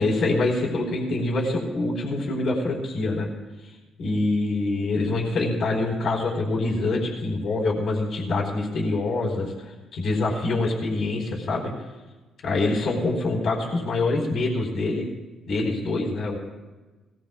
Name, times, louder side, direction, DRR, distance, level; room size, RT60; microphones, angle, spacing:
voice 1, 0.0-3.3 4.0-11.7 12.4-15.1 15.5-16.4, left 2 dB, 60° left, -2 dB, 4.4 m, -25 dB
22.0 x 19.5 x 2.4 m, 1.2 s
cardioid pair, 90°, 0 cm